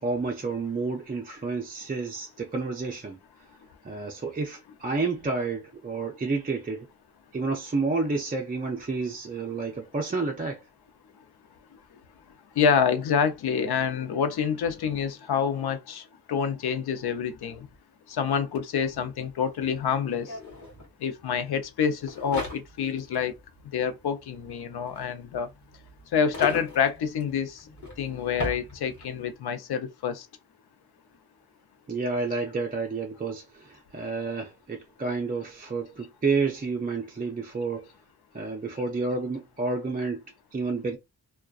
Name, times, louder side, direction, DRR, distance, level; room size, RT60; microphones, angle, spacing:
voice 1, 0.0-3.2 3.8-6.9 7.3-10.6 31.9-37.8 38.3-40.2 40.5-41.0, right 4 dB, 25° right, 0.4 m, -30 dB
voice 2, 12.6-16.0 16.3-17.7 18.1-20.3 21.0-23.3 23.7-25.5 26.1-27.6 28.0-30.3, left 7 dB, 80° left, 0.6 m, -27 dB
sound 1, 18.6-18.7 18.8-29.3, left 2 dB, 50° left, 1.1 m, -40 dB
2.5 x 2.2 x 2.3 m
wide cardioid pair, 135°, 38 cm